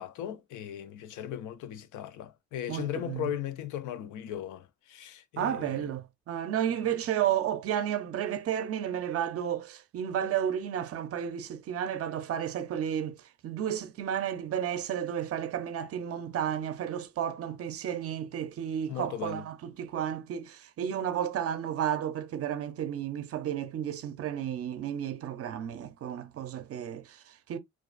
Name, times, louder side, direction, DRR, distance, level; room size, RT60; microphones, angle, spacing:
voice 1, 0.0-5.9 6.6-6.7 18.9-19.4, left 10 dB, 80° left, 0.5 m, -37 dB
voice 2, 2.7-3.3 5.4-27.6, right 9 dB, 50° right, 0.5 m, -32 dB
2.3 x 2.3 x 2.4 m
cardioid pair, 90°, 30 cm